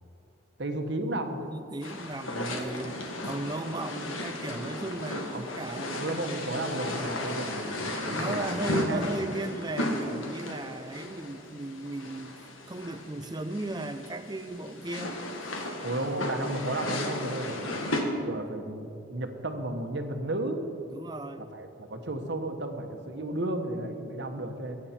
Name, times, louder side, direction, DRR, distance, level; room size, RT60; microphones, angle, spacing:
voice 1, 0.6-1.5 5.3-9.0 15.8-20.7 21.4-24.8, right 1 dB, 60° right, 6 dB, 1.1 m, -34 dB
voice 2, 1.4-6.0 7.2-7.4 8.1-15.2 20.9-21.5, right 2 dB, 20° right, 10 dB, 0.5 m, -36 dB
sound 1, 1.8-18.0, left 1 dB, 85° left, 1.7 m, -35 dB
21.0 x 8.8 x 4.4 m, 2.7 s
head